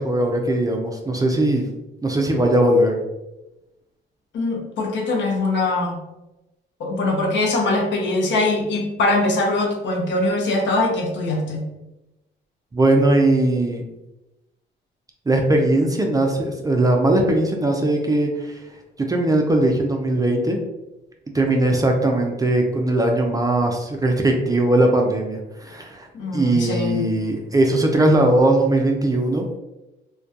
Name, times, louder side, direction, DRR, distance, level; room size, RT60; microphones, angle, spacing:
voice 1, 0.0-1.7 2.0-3.0 12.7-13.8 15.3-18.6 19.0-20.6 21.3-26.1 26.3-29.5, right 1 dB, 20° right, 2 dB, 0.3 m, -19 dB
voice 2, 4.3-6.0 6.8-11.7 26.1-27.0, left 2 dB, 65° left, 0 dB, 0.7 m, -22 dB
2.2 x 2.2 x 2.6 m, 0.96 s
cardioid pair, 90°, 20 cm